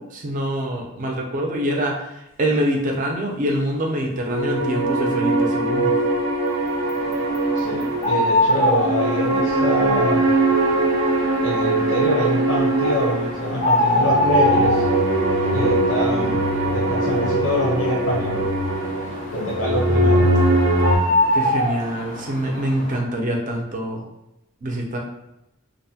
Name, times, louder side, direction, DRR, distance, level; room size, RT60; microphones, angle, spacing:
voice 1, 0.0-2.1 2.4-6.0 21.3-24.0 24.6-25.0, right 1 dB, 40° right, 0 dB, 0.5 m, -25 dB
sound 1, 4.2-21.0, right 2 dB, 85° right, 0.5 m, -21 dB
sound 2, 6.7-23.0, left 1 dB, 35° left, 0.5 m, -26 dB
voice 2, 7.6-10.3 11.4-14.9 15.5-18.4 19.3-20.3, equal, 80° left, -3 dB, 0.6 m, -25 dB
2.6 x 2.1 x 2.7 m, 0.86 s
head